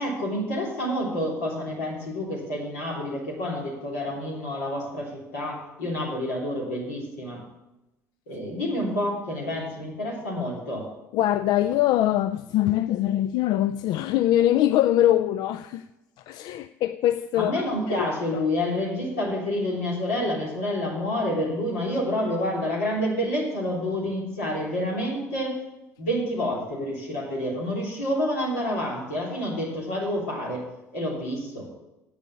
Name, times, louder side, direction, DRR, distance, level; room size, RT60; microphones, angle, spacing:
voice 1, 0.0-7.4 8.3-10.9 17.4-25.6 26.0-30.7 30.9-31.7, left 1 dB, 85° left, 3.3 m, -28 dB
voice 2, 11.1-15.8 16.3-17.5 17.9-18.1 18.3-18.4, left 13 dB, 60° left, 0.3 m, -23 dB
8.6 x 6.8 x 8.4 m
hypercardioid pair, 65°, 8 cm